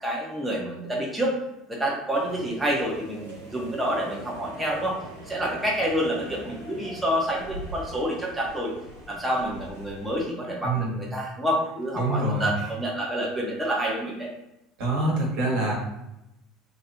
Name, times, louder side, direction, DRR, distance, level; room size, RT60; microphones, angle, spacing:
voice 1, 0.0-1.3 1.7-5.0 5.3-8.7 9.1-14.3, equal, 10° right, -3 dB, 0.9 m, -28 dB
sound 1, 2.1-10.2, right 1 dB, 80° right, 1.1 m, -42 dB
voice 2, 10.6-11.0 11.9-12.5 14.8-15.7, right 2 dB, 60° right, -3 dB, 1.3 m, -25 dB
3.1 x 2.8 x 2.6 m, 0.89 s
figure-of-eight pair, 65°, 0 cm